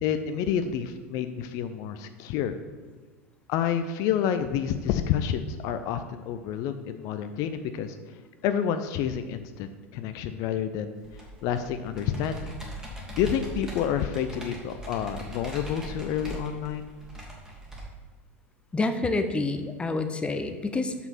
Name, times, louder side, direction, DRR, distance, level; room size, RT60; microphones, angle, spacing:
voice 1, 0.0-2.5 3.5-8.0 8.4-9.7 9.9-11.0 11.4-12.5 13.2-16.9, left 9 dB, 55° left, 9 dB, 0.5 m, -29 dB
Computer keyboard, 11.0-17.8, right 1 dB, 10° right, 1.9 m, -40 dB
voice 2, 18.7-20.9, left 3 dB, 15° left, 7 dB, 0.7 m, -28 dB
5.9 x 5.6 x 5.9 m, 1.4 s
hypercardioid pair, 90°, 7 cm